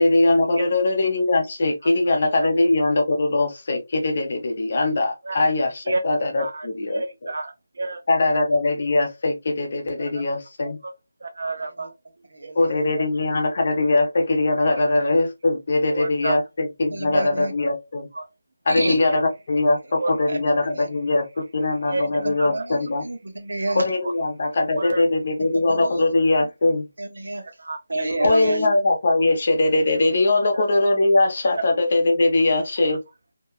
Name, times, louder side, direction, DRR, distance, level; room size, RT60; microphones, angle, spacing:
voice 1, 0.0-7.0 8.1-10.8 12.5-18.1 18.7-23.0 23.7-26.9 28.2-33.0, left 2 dB, 35° left, 0.6 m, -21 dB
voice 2, 6.4-6.7 6.9-8.0 10.8-10.9 11.2-11.9 12.4-12.5 15.9-16.4 17.1-17.4 18.1-18.3 19.0-19.2 20.0-20.1 21.9-22.6 23.7-23.8 24.8-25.0 27.6-27.8 28.2-28.4 30.5-30.6, right 3 dB, 60° right, 0.4 m, -30 dB
voice 3, 16.9-17.5 18.7-19.0 20.3-20.4 20.7-20.9 22.2-22.8 23.0-23.8 25.5-25.9 27.0-27.4 27.9-28.7, right 2 dB, 75° right, 1.0 m, -28 dB
2.8 x 2.2 x 2.3 m
figure-of-eight pair, 175°, 0 cm